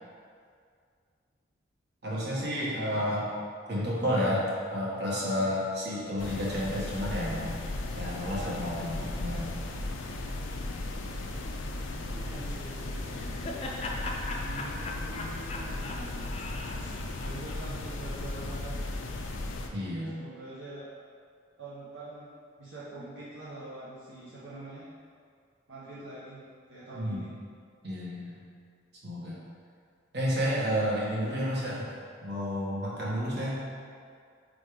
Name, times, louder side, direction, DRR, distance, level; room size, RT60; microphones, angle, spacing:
voice 1, 2.0-3.3 3.7-7.5 7.9-9.5 19.7-20.1 26.9-27.3 27.8-28.4 29.0-29.4 30.1-31.9 32.2-33.6, equal, 60° right, -6 dB, 1.4 m, -31 dB
sound 1, 6.2-19.7, left 2 dB, 85° left, 0.5 m, -36 dB
voice 2, 11.6-13.6 14.4-18.8 20.2-20.9 21.6-22.3 22.6-24.9 25.7-26.4 26.7-27.3, right 2 dB, 75° right, -10 dB, 1.0 m, -45 dB
Laughter, 12.8-18.0, left 2 dB, 30° left, 0.5 m, -40 dB
4.8 x 4.0 x 5.1 m, 2.2 s
head